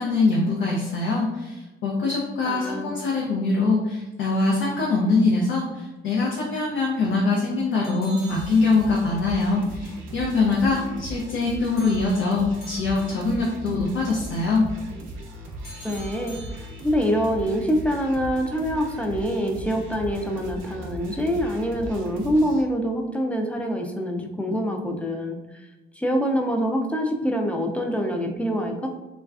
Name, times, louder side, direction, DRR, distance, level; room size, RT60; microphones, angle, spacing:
voice 1, 0.0-14.7, left 3 dB, 80° left, -3 dB, 0.5 m, -23 dB
voice 2, 2.5-2.9 15.8-25.7 26.0-28.9, equal, 5° left, 2 dB, 0.4 m, -25 dB
sound 1, 7.8-9.2 11.8-13.5 15.6-17.1, right 2 dB, 50° left, 0.9 m, -46 dB
sound 2, 8.3-22.6, right 1 dB, 75° right, 0.6 m, -38 dB
3.1 x 2.3 x 2.3 m, 1.1 s
cardioid pair, 90°, 20 cm